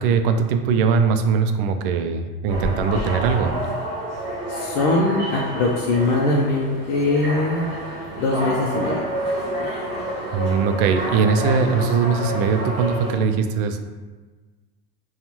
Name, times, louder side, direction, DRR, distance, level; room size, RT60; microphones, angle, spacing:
voice 1, 0.0-3.5 10.3-13.8, right 5 dB, 60° right, 7 dB, 0.4 m, -20 dB
sound 1, 2.5-13.1, right 1 dB, 20° right, 1.4 m, -29 dB
voice 2, 4.5-7.7 8.1-9.0, left 2 dB, 55° left, -3 dB, 0.5 m, -21 dB
5.4 x 2.3 x 3.0 m, 1.3 s
cardioid pair, 180°, 31 cm